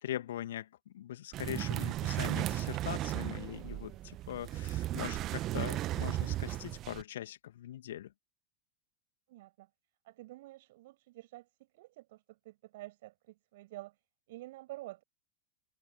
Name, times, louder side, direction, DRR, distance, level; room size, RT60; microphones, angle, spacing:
voice 1, 0.0-8.1, left 12 dB, 60° left, 2.4 m, -41 dB
sound 1, 1.3-7.0, right 14 dB, 35° right, 1.4 m, -35 dB
voice 2, 9.3-9.7 10.0-11.5 11.7-14.0 14.3-15.0, right 18 dB, 55° right, 6.4 m, -49 dB
figure-of-eight pair, 90°, 0 cm